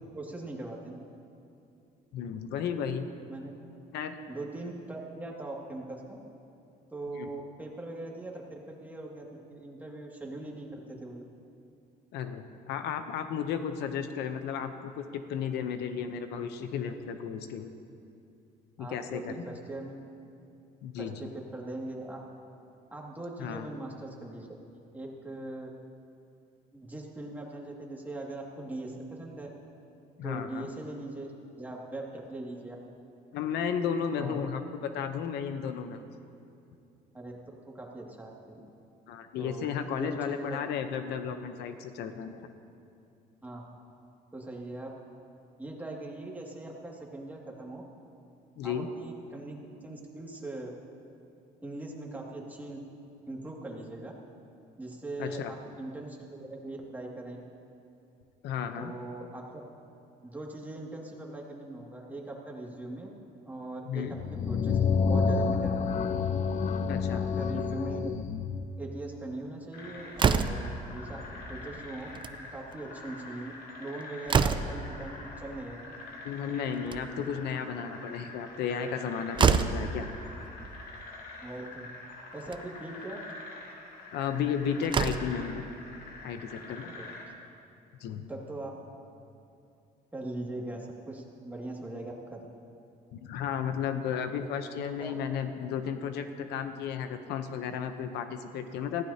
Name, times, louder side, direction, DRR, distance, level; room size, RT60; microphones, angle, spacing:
voice 1, 0.1-1.0 3.3-3.5 4.3-6.2 6.9-11.2 18.8-20.0 21.0-22.2 22.9-24.5 24.9-25.7 26.7-29.5 30.2-31.3 31.6-32.8 34.1-34.4 37.1-37.3 37.7-38.3 39.4-39.7 40.0-40.5 43.4-43.8 44.3-44.9 45.6-47.8 48.6-50.7 51.6-52.8 53.3-54.1 54.8-57.4 58.8-59.4 60.2-63.1 63.5-64.1 64.3-64.8 65.1-66.1 67.1-68.1 68.8-71.2 71.5-72.1 72.5-73.5 73.8-75.9 79.4-79.6 81.4-81.9 82.3-83.2 86.9-87.0 88.3-88.7 90.1-92.4 95.0-95.1, right 2 dB, 10° right, -2 dB, 2.2 m, -40 dB
voice 2, 2.1-3.1 3.9-4.2 7.1-7.3 12.1-17.7 18.8-19.5 20.8-21.3 23.4-23.7 30.2-30.7 33.3-36.0 39.1-42.4 48.6-48.9 55.2-55.5 58.4-58.9 63.9-64.1 66.9-67.2 76.2-80.1 84.1-85.7 86.2-86.9 88.0-88.2 93.1-99.0, left 7 dB, 85° left, 8 dB, 0.8 m, -34 dB
sound 1, 64.1-68.7, left 5 dB, 45° left, 0.6 m, -28 dB
sound 2, 69.7-87.2, left 3 dB, 65° left, 2.8 m, -46 dB
Slam, 70.2-70.8 72.0-72.4 72.7-72.8 73.1-73.2 73.7-74.9 76.6-77.3 78.9-79.0 79.4-79.9 81.0-81.1 81.5-81.6 82.4-82.6 84.3-84.4 84.8-85.4, right 6 dB, 30° right, 0.6 m, -26 dB
20.0 x 15.5 x 2.9 m, 2.6 s
cardioid pair, 110°, 17 cm